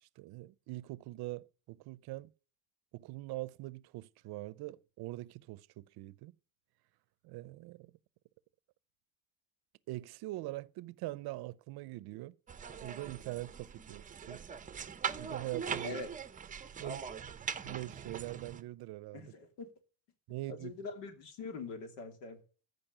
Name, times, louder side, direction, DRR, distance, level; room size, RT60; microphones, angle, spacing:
voice 1, 0.0-2.3 2.9-6.3 7.2-7.9 9.9-12.3 12.8-14.4 15.2-16.0 16.8-17.1 17.6-19.3 20.3-20.7, right 18 dB, 60° right, 0.7 m, -43 dB
sound 1, 12.5-18.6, right 7 dB, 20° right, 0.6 m, -41 dB
voice 2, 19.1-19.7 20.5-22.4, left 4 dB, 85° left, 2.8 m, -43 dB
14.5 x 5.4 x 6.7 m
cardioid pair, 135°, 42 cm